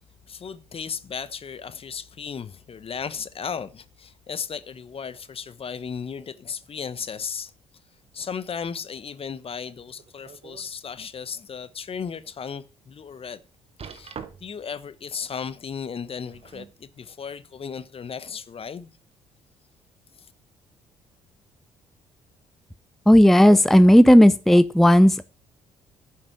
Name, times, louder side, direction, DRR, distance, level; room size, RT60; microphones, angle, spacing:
voice 1, 0.3-7.5 8.1-13.4 13.8-18.9 20.2-20.3, left 6 dB, 40° left, 1.1 m, -35 dB
sound 1, 9.9-10.7 11.2-11.3 11.9-12.0 13.8-14.7 16.0-16.8 17.7-17.8, right 6 dB, 45° right, 1.4 m, -43 dB
voice 2, 23.1-25.2, equal, ahead, 0.7 m, -13 dB
11.0 x 6.0 x 7.4 m
hypercardioid pair, 50°, 14 cm